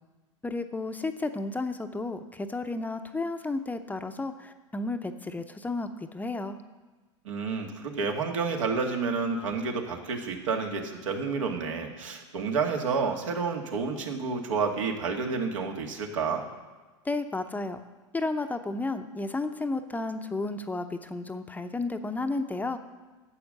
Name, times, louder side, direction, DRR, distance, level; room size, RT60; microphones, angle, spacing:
voice 1, 0.4-6.6 17.0-17.8 18.1-22.8, left 3 dB, 10° left, 8 dB, 0.7 m, -32 dB
voice 2, 7.3-16.4, right 5 dB, 80° right, 2 dB, 2.0 m, -30 dB
11.0 x 7.9 x 6.6 m, 1.3 s
hypercardioid pair, 105°, 16 cm